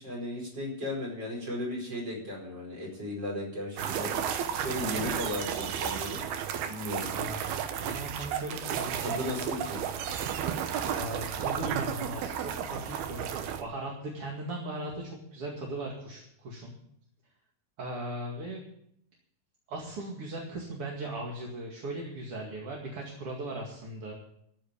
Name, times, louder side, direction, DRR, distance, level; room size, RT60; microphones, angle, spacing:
voice 1, 0.0-6.2 6.7-7.1 9.0-9.8, left 1 dB, 25° right, -2 dB, 5.4 m, -36 dB
sound 1, 3.8-13.6, right 8 dB, 85° right, 3.0 m, -33 dB
voice 2, 7.8-9.5 10.9-16.8 17.8-18.6 19.7-24.1, right 1 dB, 45° right, -1 dB, 2.5 m, -38 dB
14.0 x 7.7 x 8.7 m, 0.73 s
omnidirectional pair, 4.4 m